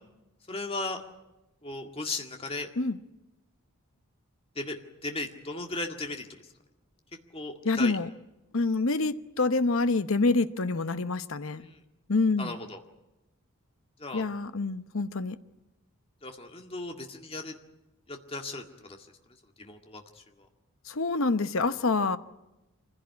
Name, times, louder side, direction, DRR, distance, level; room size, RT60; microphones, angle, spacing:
voice 1, 0.5-1.0 1.6-2.7 4.6-6.3 7.3-8.0 11.6-11.8 12.4-12.8 14.0-14.3 16.2-17.6 18.1-19.1 19.6-20.5, left 2 dB, 25° left, 4 dB, 1.9 m, -36 dB
voice 2, 7.6-8.1 8.5-11.6 12.1-12.5 14.1-15.4 20.9-22.2, left 3 dB, 65° left, 12 dB, 0.9 m, -26 dB
25.0 x 16.0 x 9.5 m, 0.98 s
head